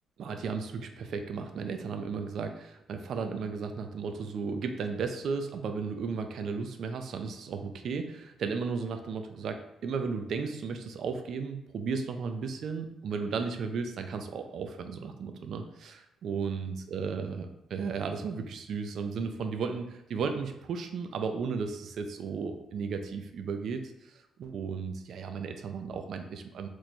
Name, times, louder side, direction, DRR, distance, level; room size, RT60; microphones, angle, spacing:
voice 1, 0.2-23.9 24.4-26.7, right 5 dB, 65° right, 7 dB, 0.4 m, -34 dB
3.1 x 2.2 x 4.0 m, 0.87 s
cardioid pair, 90°, 0 cm